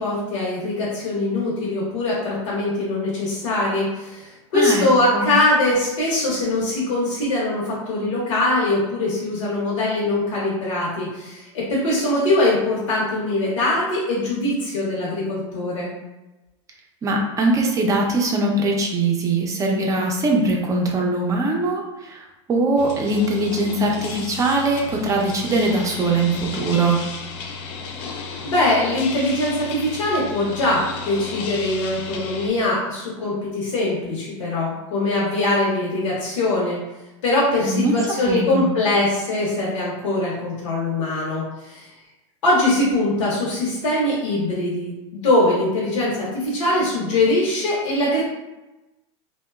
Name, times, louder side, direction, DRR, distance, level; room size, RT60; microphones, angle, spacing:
voice 1, 0.0-15.9 28.4-36.8 37.2-41.9 42.4-48.2, left 2 dB, 90° left, -6 dB, 0.8 m, -22 dB
voice 2, 4.5-4.9 5.1-5.3 17.0-27.0 37.6-37.9 38.2-38.7, right 2 dB, 20° right, 0 dB, 0.4 m, -21 dB
sound 1, 22.8-32.5, left 5 dB, 55° left, 0.4 m, -34 dB
2.8 x 2.1 x 2.2 m, 1.0 s
supercardioid pair, 125°, 16 cm